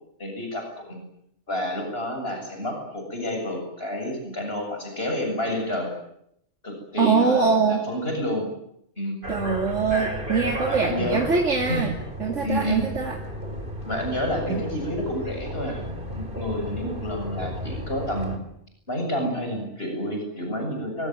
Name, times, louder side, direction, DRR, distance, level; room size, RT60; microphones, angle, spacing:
voice 1, 0.2-1.0 1.5-5.9 6.6-8.5 9.0-9.2 10.7-11.2 11.7-11.8 12.4-12.8 13.9-15.8 16.1-18.3 18.9-21.1, left 1 dB, 55° left, 3 dB, 7.8 m, -29 dB
voice 2, 7.0-7.8 9.3-11.9 12.2-13.2 14.5-14.6, right 5 dB, 85° right, 2 dB, 2.9 m, -23 dB
sound 1, 9.2-18.4, equal, 45° right, 4.0 m, -33 dB
25.5 x 22.5 x 9.3 m, 0.74 s
omnidirectional pair, 1.2 m